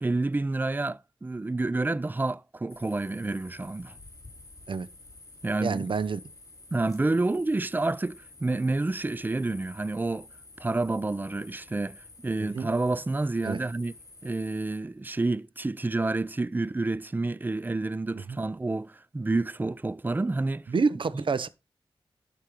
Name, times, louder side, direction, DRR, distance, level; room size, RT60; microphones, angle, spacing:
voice 1, 0.0-3.9 5.4-5.9 6.7-10.3 10.6-13.9 14.2-20.7, right 2 dB, 20° right, 0.4 m, -29 dB
sound 1, 2.7-14.8, left 2 dB, 35° left, 4.2 m, -51 dB
voice 2, 5.6-6.2 12.5-12.7 13.4-13.6 20.7-21.5, right 4 dB, 65° right, 0.8 m, -27 dB
11.5 x 4.6 x 5.1 m
cardioid pair, 60°, 9 cm